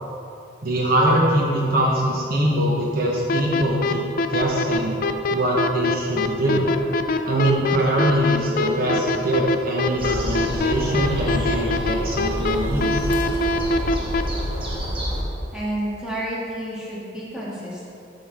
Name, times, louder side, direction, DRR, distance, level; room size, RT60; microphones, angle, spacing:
voice 1, 0.6-4.0 4.3-5.0 5.3-6.7 7.2-13.2, right 1 dB, 50° right, -3 dB, 1.0 m, -22 dB
sound 1, 3.3-14.2, left 3 dB, 50° left, 0.4 m, -22 dB
sound 2, 10.0-15.2, equal, 30° right, 1.3 m, -28 dB
voice 2, 15.5-17.9, right 1 dB, 5° right, -8 dB, 1.9 m, -30 dB
12.0 x 6.0 x 3.5 m, 2.7 s
head